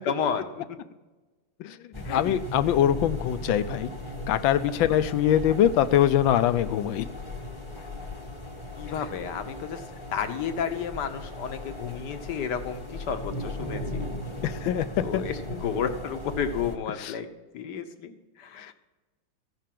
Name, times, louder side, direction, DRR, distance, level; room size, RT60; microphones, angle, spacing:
voice 1, 0.0-0.8 2.0-2.4 4.8-4.9 7.7-7.9 8.8-9.8 10.1-14.0 15.0-17.3 17.5-18.7, left 7 dB, 65° left, 8 dB, 1.5 m, -32 dB
sound 1, 1.9-16.8, left 1 dB, 20° left, 1.0 m, -37 dB
voice 2, 2.0-3.9 4.3-7.0 14.4-14.9 15.1-15.2 18.6-18.7, left 10 dB, 90° left, 12 dB, 1.4 m, -23 dB
14.5 x 5.6 x 7.5 m, 1.2 s
omnidirectional pair, 2.1 m